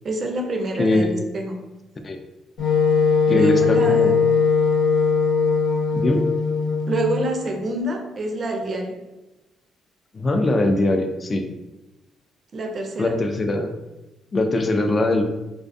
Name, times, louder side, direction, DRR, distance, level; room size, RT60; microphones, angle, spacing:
voice 1, 0.0-1.6 3.3-4.2 6.9-9.0 12.5-13.2, right 1 dB, 45° right, 3 dB, 0.4 m, -27 dB
voice 2, 0.8-1.1 2.0-2.2 3.3-4.1 5.9-6.3 10.1-11.4 13.0-13.7 14.3-15.2, left 2 dB, 35° left, 5 dB, 0.3 m, -21 dB
Wind instrument woodwind instrument, 2.6-7.3, left 5 dB, 85° left, 0.9 m, -19 dB
2.5 x 2.2 x 2.6 m, 1.0 s
cardioid pair, 90°, 0 cm